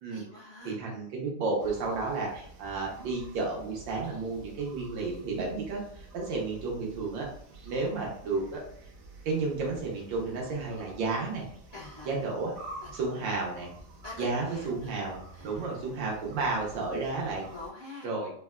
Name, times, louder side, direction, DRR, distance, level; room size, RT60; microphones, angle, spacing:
voice 1, 0.1-0.8 11.7-12.2 12.8-12.9 14.0-14.9 15.3-15.8 17.5-18.1, left 3 dB, 60° left, -5 dB, 0.6 m, -45 dB
voice 2, 0.6-7.3 7.6-8.6 9.2-11.4 12.1-12.5 12.9-13.7 14.2-15.2 15.4-17.4 18.0-18.3, right 3 dB, 85° right, -2 dB, 1.5 m, -32 dB
sound 1, 1.6-17.7, right 2 dB, 65° right, 0.9 m, -49 dB
3.8 x 2.1 x 2.3 m, 0.63 s
omnidirectional pair, 1.9 m